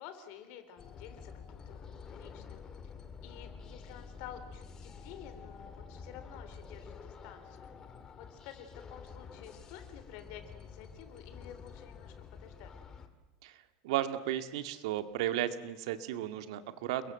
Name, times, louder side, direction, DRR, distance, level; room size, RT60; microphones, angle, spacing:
voice 1, 0.0-2.6 3.2-7.7 8.2-12.7, left 9 dB, 50° left, 9 dB, 3.9 m, -51 dB
sound 1, 0.8-13.1, left 5 dB, 20° left, 2.0 m, -49 dB
voice 2, 13.8-17.1, right 12 dB, 70° right, 9 dB, 2.1 m, -34 dB
30.0 x 22.5 x 7.8 m, 1.1 s
supercardioid pair, 170°, 3 cm